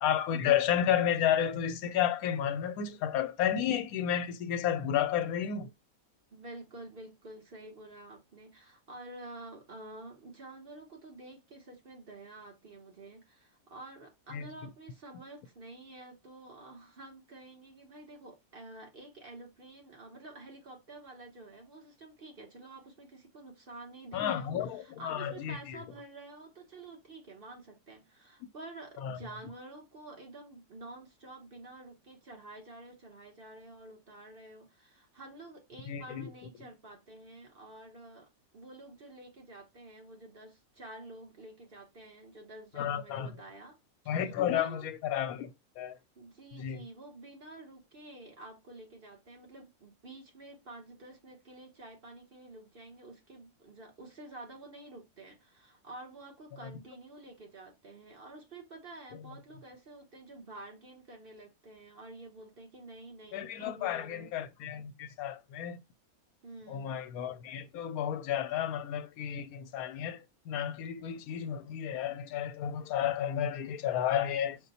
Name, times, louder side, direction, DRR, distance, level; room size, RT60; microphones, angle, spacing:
voice 1, 0.0-5.7 14.3-14.5 24.1-25.8 29.0-29.2 35.9-36.3 42.8-43.4 44.1-45.5 45.8-46.0 46.6-46.8 63.3-65.8 66.7-74.6, left 9 dB, 90° left, 1.1 m, -32 dB
voice 2, 6.3-38.3 38.5-43.8 44.0-44.9 46.1-64.3 66.4-67.0, right 2 dB, 45° right, 1.2 m, -49 dB
5.1 x 2.2 x 4.1 m
omnidirectional pair, 1.5 m